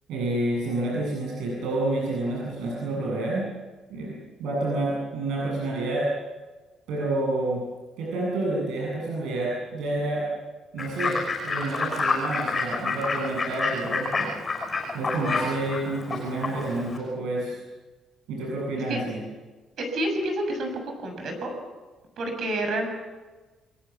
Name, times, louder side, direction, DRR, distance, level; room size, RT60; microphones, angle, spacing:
voice 1, 0.1-3.5 3.9-6.1 6.9-7.6 8.0-10.3 10.7-14.3 14.9-17.6 18.3-19.2, right 2 dB, 85° right, -3 dB, 7.8 m, -29 dB
Fowl / Bird, 10.8-17.0, left 3 dB, 20° left, 6.1 m, -29 dB
voice 2, 19.8-20.7 21.0-21.5 22.2-22.9, right 1 dB, 50° right, 5 dB, 6.8 m, -28 dB
28.0 x 23.0 x 7.3 m, 1.3 s
cardioid pair, 165°, 0 cm